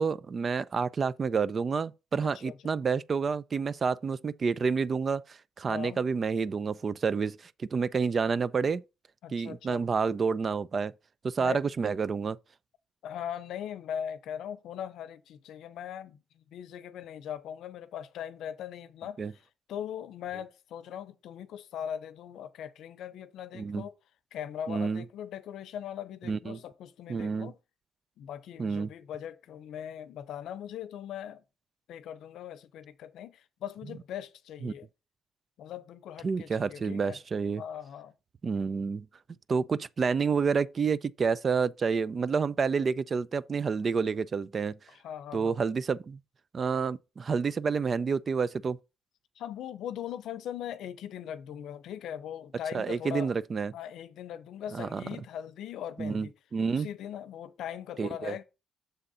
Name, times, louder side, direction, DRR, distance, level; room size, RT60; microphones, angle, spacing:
voice 1, 0.0-8.8 9.3-10.9 11.2-12.4 19.2-19.3 23.5-23.9 24.7-25.0 26.3-26.6 27.1-27.5 28.6-28.9 34.6-34.7 36.2-37.6 38.4-39.1 39.5-44.8 45.3-46.2 46.5-48.8 52.7-53.7 54.7-55.0 56.0-56.9 58.0-58.4, right 5 dB, 40° right, 0.4 m, -29 dB
voice 2, 2.2-2.8 5.7-6.0 9.2-9.9 11.4-11.6 13.0-24.0 24.3-27.6 28.2-31.4 31.9-34.9 35.6-37.2 37.6-38.1 44.9-45.6 49.4-53.3 53.7-56.3 56.7-58.4, left 9 dB, 80° left, 0.7 m, -40 dB
6.8 x 3.7 x 5.5 m
cardioid pair, 90°, 0 cm